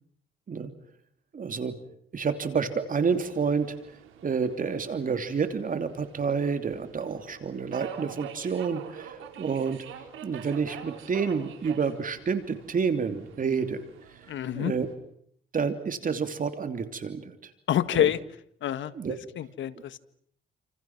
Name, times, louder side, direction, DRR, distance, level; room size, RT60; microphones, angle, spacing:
voice 1, 1.3-1.7 2.1-3.7 4.2-9.8 10.2-13.9 14.5-14.9 15.5-17.5 17.9-18.1 18.9-19.2, right 5 dB, 45° right, 8 dB, 2.9 m, -29 dB
Subway metro underground, 2.9-14.9, right 8 dB, 85° right, 4.7 m, -46 dB
voice 2, 14.3-14.7 17.7-18.2 18.6-18.9 19.4-20.0, left 11 dB, 70° left, 13 dB, 1.7 m, -26 dB
29.5 x 27.5 x 6.0 m, 0.66 s
cardioid pair, 90°, 20 cm